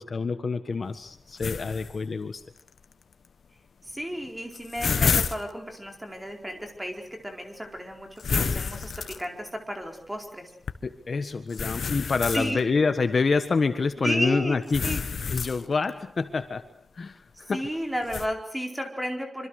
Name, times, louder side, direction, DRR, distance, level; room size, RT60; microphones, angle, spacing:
voice 1, 0.0-2.4 10.8-14.8 15.3-16.6 17.0-17.2 17.5-17.6, left 4 dB, 45° left, 8 dB, 1.4 m, -27 dB
sound 1, 1.4-1.9 2.6-2.7 3.9-4.0 4.2-5.5 8.2-9.5 10.7-10.8 11.5-12.6 14.7-15.9 18.1-18.3, left 5 dB, 70° left, 1.5 m, -28 dB
voice 2, 3.8-10.5 12.3-12.6 14.0-14.6 14.8-15.0 17.5-19.5, equal, 10° right, 3 dB, 4.6 m, -33 dB
26.0 x 25.5 x 6.6 m, 0.64 s
wide cardioid pair, 170°, 0 cm